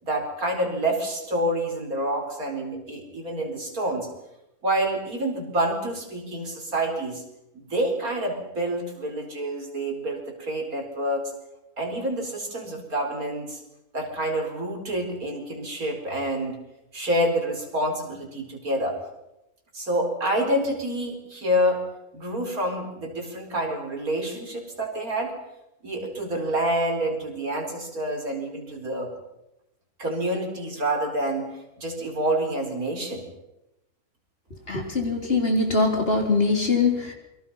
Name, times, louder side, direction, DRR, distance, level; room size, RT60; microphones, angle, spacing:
voice 1, 0.0-4.1 4.6-7.2 7.5-11.2 11.8-13.6 13.9-16.6 16.9-19.0 19.7-21.8 22.1-25.3 25.8-29.1 30.0-31.4 31.8-33.3, right 1 dB, 75° right, 2 dB, 5.1 m, -27 dB
voice 2, 34.7-37.1, left 3 dB, 40° left, 2 dB, 4.2 m, -22 dB
28.5 x 23.5 x 5.7 m, 0.89 s
omnidirectional pair, 1.5 m